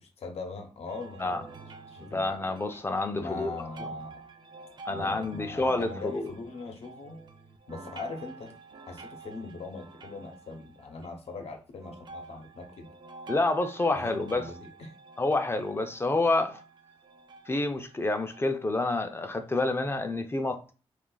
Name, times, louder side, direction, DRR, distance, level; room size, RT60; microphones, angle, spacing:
voice 1, 0.2-1.2 1.9-2.3 3.1-4.2 4.9-7.2 7.7-8.6 8.9-12.9 13.9-14.9, left 3 dB, 70° left, 0.8 m, -40 dB
sound 1, 0.9-11.1 11.8-18.7 19.4-19.5 20.1-20.2, right 3 dB, 45° right, 0.4 m, -48 dB
voice 2, 2.0-3.5 4.9-6.3 13.3-14.4 15.2-16.6 17.5-20.7, left 2 dB, 20° left, 0.5 m, -28 dB
2.4 x 2.3 x 3.9 m
cardioid pair, 70°, 11 cm